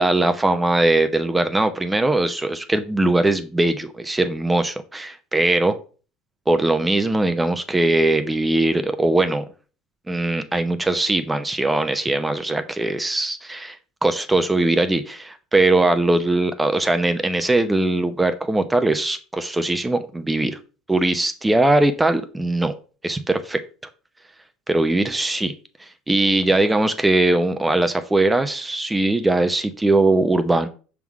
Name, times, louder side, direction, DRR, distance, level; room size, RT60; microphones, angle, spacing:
voice 1, 0.0-5.8 6.5-9.4 10.1-13.8 14.0-20.6 20.9-22.7 23.0-23.6 24.7-25.5 25.8-30.7, right 2 dB, 15° right, 9 dB, 0.7 m, -20 dB
5.8 x 3.7 x 4.7 m, 0.36 s
hypercardioid pair, 80°, 0 cm